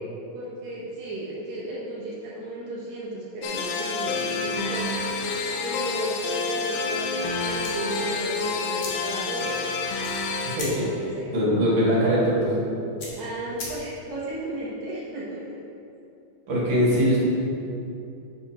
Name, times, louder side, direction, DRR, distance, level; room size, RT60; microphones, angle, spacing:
voice 1, 0.3-5.0 5.6-9.5 10.7-11.3 13.1-15.6, right 2 dB, 85° right, -7 dB, 1.5 m, -34 dB
sound 1, 3.4-10.6, left 4 dB, 85° left, 2.1 m, -28 dB
sound 2, 7.6-14.2, left 2 dB, 60° left, 2.0 m, -42 dB
voice 2, 10.4-10.9 11.3-12.5 16.5-17.2, equal, 40° right, -7 dB, 2.0 m, -21 dB
9.6 x 7.5 x 3.0 m, 2.7 s
omnidirectional pair, 4.9 m